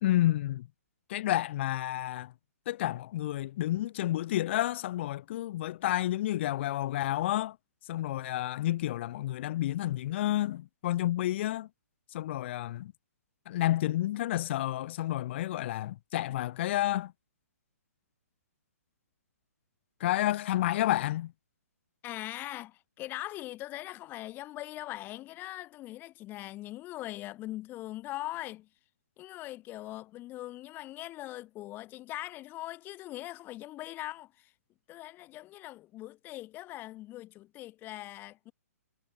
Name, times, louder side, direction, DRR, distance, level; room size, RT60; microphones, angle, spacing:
voice 1, 0.0-0.7 1.1-2.3 2.7-7.6 7.9-11.7 12.1-12.9 13.5-17.1 20.0-21.3, left 14 dB, 45° left, 1.9 m, -30 dB
voice 2, 22.0-28.7 29.2-34.5 34.9-38.5, left 16 dB, 25° left, 5.6 m, -41 dB
hypercardioid pair, 140°, 9 cm